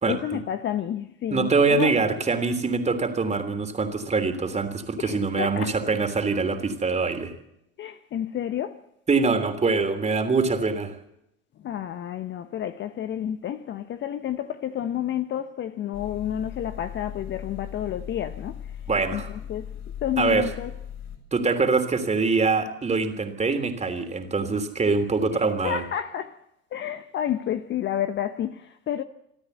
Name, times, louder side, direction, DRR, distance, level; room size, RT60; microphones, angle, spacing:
voice 1, 0.1-1.9 5.0-5.8 7.8-8.8 11.6-18.8 19.1-20.7 25.3-26.4 26.7-29.0, left 10 dB, 30° left, 0.9 m, -30 dB
voice 2, 1.3-7.3 9.1-10.9 18.9-19.3 20.2-20.5 21.3-25.8, right 4 dB, 15° right, 3.2 m, -24 dB
sound 1, 15.9-21.2, left 9 dB, 45° left, 6.6 m, -38 dB
26.5 x 13.0 x 8.1 m
figure-of-eight pair, 80°, 39 cm